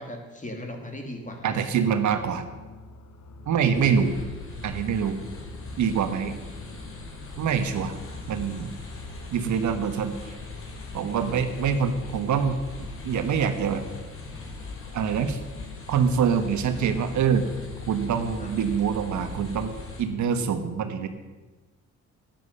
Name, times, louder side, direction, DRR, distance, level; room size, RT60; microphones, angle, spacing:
voice 1, 0.0-1.7 3.7-4.2 11.1-11.3 18.4-18.5, left 1 dB, 25° left, 3 dB, 2.8 m, -38 dB
sound 1, 1.3-20.4, left 2 dB, 65° left, 1.6 m, -46 dB
voice 2, 1.4-2.4 3.5-4.2 4.6-5.2 5.8-6.4 7.4-8.0 8.3-8.7 9.3-10.3 10.9-13.8 14.9-15.4 15.9-17.5 17.9-21.1, right 7 dB, 70° right, 8 dB, 1.3 m, -25 dB
sound 2, 3.7-20.0, left 3 dB, 45° left, 3.2 m, -40 dB
11.0 x 10.5 x 6.8 m, 1.2 s
cardioid pair, 90°, 30 cm